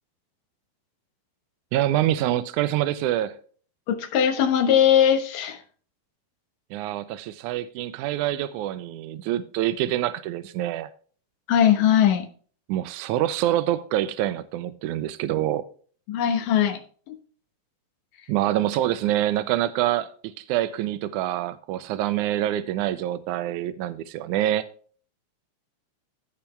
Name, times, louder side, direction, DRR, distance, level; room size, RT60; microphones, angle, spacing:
voice 1, 1.7-3.4 6.7-10.9 12.7-15.6 18.3-24.6, right 13 dB, 90° right, 1.8 m, -26 dB
voice 2, 3.9-5.6 11.5-12.3 16.1-16.8 17.1-17.2, left 9 dB, 70° left, 2.7 m, -20 dB
15.5 x 5.9 x 3.3 m
omnidirectional pair, 4.1 m